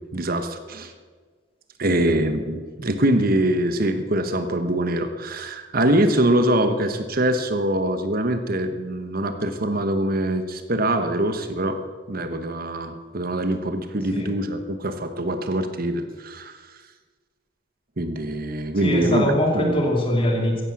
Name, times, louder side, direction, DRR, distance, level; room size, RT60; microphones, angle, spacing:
voice 1, 0.1-0.9 1.8-11.8 12.1-16.5 18.0-19.7, right 1 dB, 50° right, 9 dB, 1.2 m, -23 dB
voice 2, 18.8-20.6, left 1 dB, 30° left, 1 dB, 2.8 m, -22 dB
15.0 x 11.0 x 7.2 m, 1.5 s
head